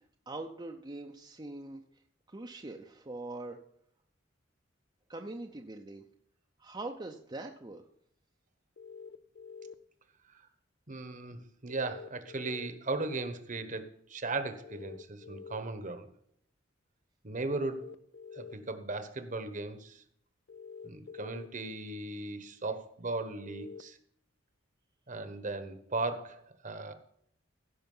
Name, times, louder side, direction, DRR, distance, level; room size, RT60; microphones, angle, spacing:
voice 1, 0.3-1.8 2.3-3.6 5.1-6.0 6.6-7.8, right 2 dB, 25° right, 2 dB, 0.7 m, -42 dB
sound 1, 8.8-9.7 11.7-12.7 14.6-15.6 17.6-18.5 20.5-21.5 23.4-23.8, left 5 dB, 60° left, 0.5 m, -47 dB
voice 2, 10.9-16.1 17.2-17.9 18.3-20.0 20.8-24.0 25.1-26.9, right 3 dB, 40° right, 10 dB, 1.2 m, -37 dB
16.5 x 5.7 x 5.5 m, 0.70 s
head